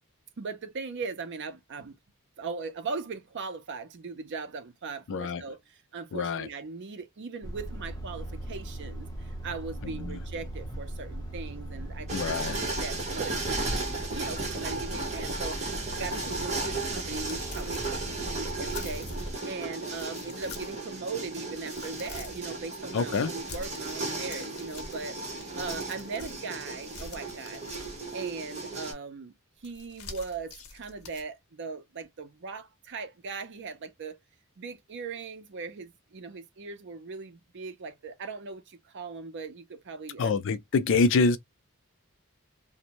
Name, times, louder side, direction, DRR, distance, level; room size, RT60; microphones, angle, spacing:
voice 1, 0.4-2.0 2.4-12.2 12.5-15.6 15.9-25.2 25.6-27.7 28.1-29.3 29.6-34.2 34.6-40.4, right 4 dB, 55° right, 0.5 m, -39 dB
voice 2, 5.1-5.4 6.1-6.5 9.8-10.2 12.1-12.6 22.9-23.3 40.2-41.4, left 4 dB, 60° left, 0.4 m, -26 dB
Truck, 7.4-19.3, right 1 dB, 20° left, 0.8 m, -38 dB
sound 1, 12.1-28.9, right 3 dB, 30° right, 0.9 m, -35 dB
sound 2, 17.1-19.4 19.9-20.9 21.3-22.5 23.3-26.5 26.8-28.2 29.6-31.2, left 4 dB, 85° left, 0.8 m, -46 dB
2.5 x 2.1 x 2.9 m
head